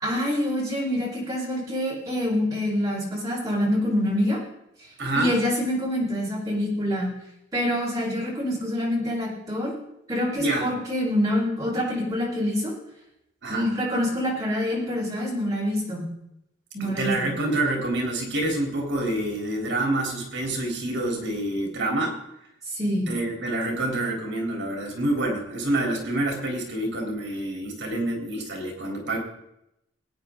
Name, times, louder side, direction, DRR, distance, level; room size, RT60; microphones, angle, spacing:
voice 1, 0.0-4.4 5.1-7.1 7.5-9.7 10.1-12.7 13.5-16.1 16.7-17.1 22.8-23.1, left 1 dB, 20° right, -5 dB, 4.7 m, -26 dB
voice 2, 5.0-5.3 10.3-10.7 13.4-13.7 16.8-22.2 23.1-29.2, right 1 dB, 65° right, 0 dB, 3.6 m, -27 dB
19.5 x 9.1 x 3.9 m, 0.83 s
head